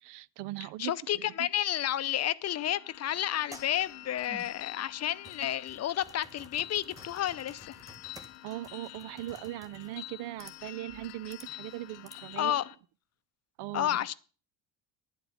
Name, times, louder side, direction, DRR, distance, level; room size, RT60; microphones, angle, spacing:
voice 1, 0.0-1.3 8.4-12.6 13.6-14.1, right 16 dB, 75° right, 0.5 m, -40 dB
voice 2, 0.8-7.8 12.4-12.6 13.7-14.1, left 11 dB, 40° left, 0.6 m, -31 dB
sound 1, 2.5-12.7, left 18 dB, 85° left, 0.6 m, -48 dB
sound 2, 3.2-12.6, equal, 10° right, 1.4 m, -54 dB
10.5 x 8.2 x 6.3 m
cardioid pair, 120°, 41 cm